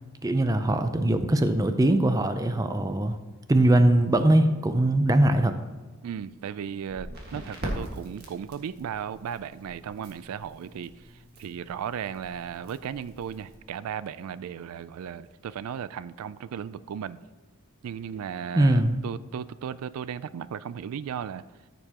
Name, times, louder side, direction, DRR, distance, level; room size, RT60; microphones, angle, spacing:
voice 1, 0.2-3.2 3.5-5.5 18.6-19.0, right 1 dB, 15° right, 9 dB, 0.5 m, -21 dB
voice 2, 6.0-17.2 17.8-21.4, right 8 dB, 90° right, 17 dB, 0.3 m, -36 dB
Crackle, 6.8-13.6, equal, 45° right, 1.7 m, -41 dB
14.0 x 6.8 x 2.9 m, 1.3 s
head